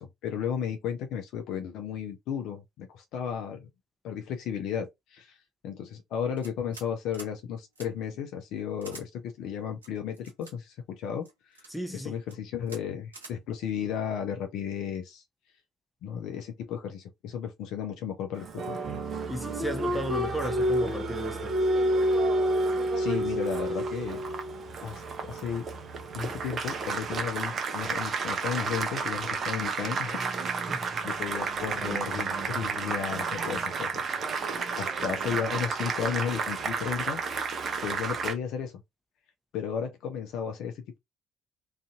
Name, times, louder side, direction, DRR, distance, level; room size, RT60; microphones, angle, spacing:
voice 1, 0.0-3.7 4.0-5.4 5.6-11.6 11.9-15.2 16.0-18.8 23.0-24.2 24.8-25.7 26.1-30.7 31.0-34.1 34.8-37.2 37.8-38.8 39.5-41.0, left 8 dB, 60° left, 0.5 m, -34 dB
sound 1, 6.4-6.9 7.1-7.3 7.7-7.9 8.8-9.1 9.8-10.5 11.2-11.7 12.2-12.4 12.7-12.8 13.1-13.3, right 3 dB, 80° right, 0.6 m, -46 dB
voice 2, 11.7-12.2 19.3-21.6 30.7-30.9, equal, 5° left, 0.6 m, -34 dB
Applause, 18.3-38.3, right 2 dB, 40° right, 0.6 m, -30 dB
2.5 x 2.5 x 2.3 m
figure-of-eight pair, 50°, 0 cm